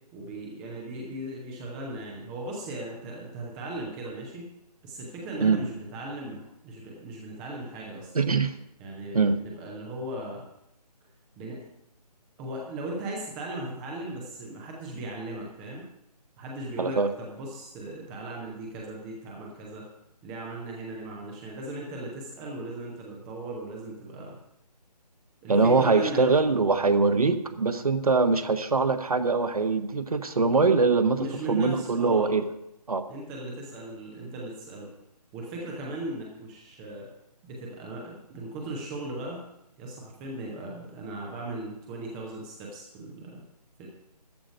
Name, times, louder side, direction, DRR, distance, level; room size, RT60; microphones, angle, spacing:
voice 1, 0.1-4.5 4.8-8.1 8.8-10.4 11.4-11.6 12.4-15.8 16.4-19.8 20.2-24.4 25.4-26.2 31.2-32.4 33.1-34.9 35.3-37.1 37.4-39.4 39.8-43.4 43.8-43.9, right 1 dB, 5° right, -1 dB, 0.5 m, -38 dB
voice 2, 8.1-8.5 9.1-9.4 16.8-17.1 25.5-31.2 31.5-32.5 32.9-33.0, right 4 dB, 60° right, 10 dB, 1.2 m, -23 dB
13.5 x 5.0 x 9.0 m, 0.81 s
figure-of-eight pair, 150°, 21 cm